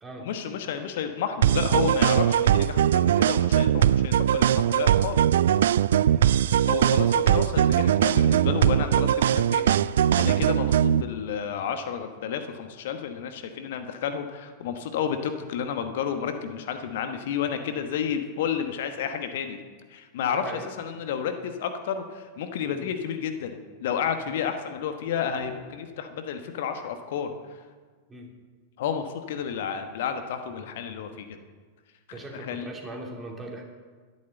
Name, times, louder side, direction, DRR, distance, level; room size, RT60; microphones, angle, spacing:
voice 1, 0.2-5.2 6.6-9.9 10.1-19.6 19.9-27.6 28.8-31.4 32.1-32.7, left 8 dB, 55° left, 7 dB, 1.2 m, -31 dB
sound 1, 1.4-11.0, right 10 dB, 60° right, 0.3 m, -21 dB
voice 2, 20.3-20.7 22.7-22.9 28.1-28.3 31.1-31.2 32.1-33.6, right 2 dB, 15° right, 1 dB, 2.9 m, -40 dB
12.0 x 11.0 x 7.9 m, 1.5 s
figure-of-eight pair, 90°, 0 cm